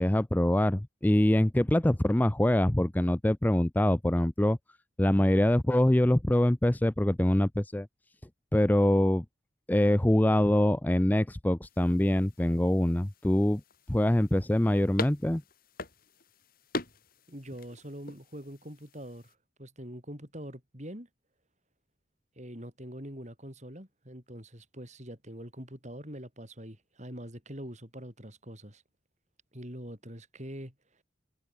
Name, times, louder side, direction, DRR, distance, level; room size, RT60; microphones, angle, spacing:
voice 1, 0.0-4.6 5.0-7.9 8.5-9.2 9.7-13.6 13.9-15.4, left 1 dB, 10° left, 0.4 m, -24 dB
sound 1, 11.6-19.3, left 2 dB, 50° left, 4.4 m, -43 dB
voice 2, 17.3-21.1 22.4-28.8 29.5-30.7, equal, 35° right, 7.9 m, -44 dB
head